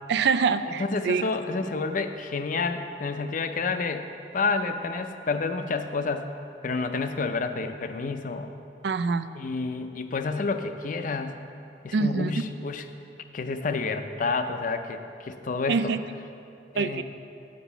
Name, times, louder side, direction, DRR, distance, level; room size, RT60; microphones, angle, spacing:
voice 1, 0.1-1.2 8.8-9.3 11.9-12.3 15.7-16.0 16.8-17.0, right 5 dB, 65° right, 12 dB, 0.3 m, -25 dB
voice 2, 0.8-4.1 4.3-6.2 6.6-8.5 9.4-11.4 11.8-12.8 13.3-15.9 16.7-17.0, left 4 dB, 50° left, 8 dB, 0.5 m, -29 dB
7.5 x 6.0 x 7.0 m, 2.6 s
head